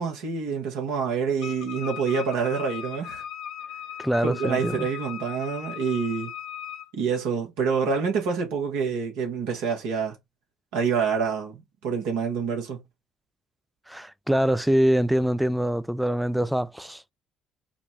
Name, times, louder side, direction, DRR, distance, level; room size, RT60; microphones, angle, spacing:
voice 1, 0.0-3.2 4.2-6.3 6.9-10.2 10.7-12.8, right 6 dB, 75° right, 1.2 m, -27 dB
Wind instrument woodwind instrument, 1.4-6.9, left 10 dB, 65° left, 0.4 m, -38 dB
voice 2, 4.0-4.9 13.9-17.1, equal, 5° right, 0.4 m, -24 dB
4.9 x 2.2 x 3.1 m
hypercardioid pair, 50°, 0 cm